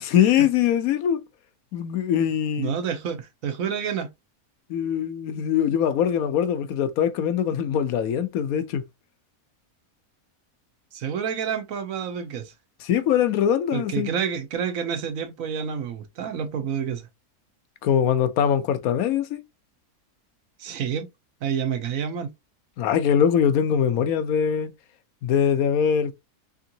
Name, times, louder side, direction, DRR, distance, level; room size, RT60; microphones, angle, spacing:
voice 1, 0.0-1.2 1.7-2.7 4.7-8.8 12.8-14.1 17.8-19.4 22.8-24.7 25.2-26.1, left 8 dB, 70° left, 1.1 m, -22 dB
voice 2, 2.6-4.1 10.9-12.5 13.7-17.1 20.6-21.1 21.4-22.3, right 7 dB, 65° right, 1.1 m, -29 dB
3.6 x 3.6 x 2.7 m
omnidirectional pair, 1.6 m